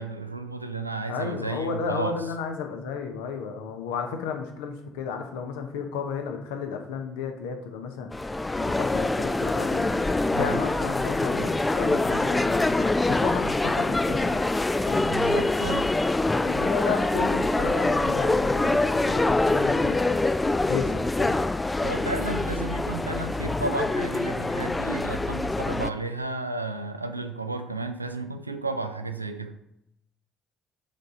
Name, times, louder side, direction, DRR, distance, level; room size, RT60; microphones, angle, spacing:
voice 1, 0.0-2.2 10.3-10.6 14.9-15.9 21.8-29.6, right 3 dB, 85° right, 8 dB, 0.4 m, -33 dB
voice 2, 1.1-8.3 8.6-9.9 10.4-14.4 14.9-15.1 16.4-20.3 20.7-21.4, left 6 dB, 65° left, 5 dB, 0.9 m, -33 dB
sound 1, 8.1-25.9, left 2 dB, 15° left, 0.4 m, -25 dB
10.0 x 4.0 x 3.7 m, 0.81 s
figure-of-eight pair, 50°, 0 cm